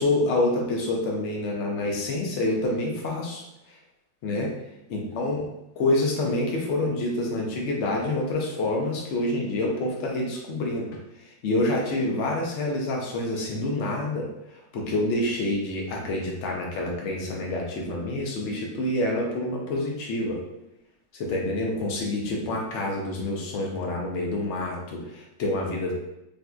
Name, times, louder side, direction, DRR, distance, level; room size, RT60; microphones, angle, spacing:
voice 1, 0.0-3.4 4.2-4.5 4.9-5.5 5.8-11.0 11.4-14.3 14.7-20.4 21.1-25.9, left 2 dB, 70° left, -1 dB, 0.6 m, -27 dB
3.6 x 2.7 x 2.3 m, 0.87 s
omnidirectional pair, 2.0 m